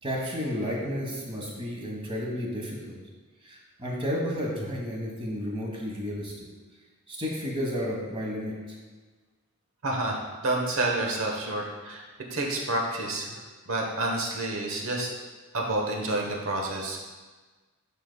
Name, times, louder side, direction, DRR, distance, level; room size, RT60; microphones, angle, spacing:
voice 1, 0.0-3.0 3.4-6.3 7.1-8.8, equal, 25° right, -2 dB, 1.4 m, -32 dB
voice 2, 9.8-12.0 12.3-13.4 13.7-15.1 15.5-17.0, right 2 dB, 65° right, 0 dB, 1.1 m, -29 dB
10.0 x 5.2 x 2.3 m, 1.3 s
head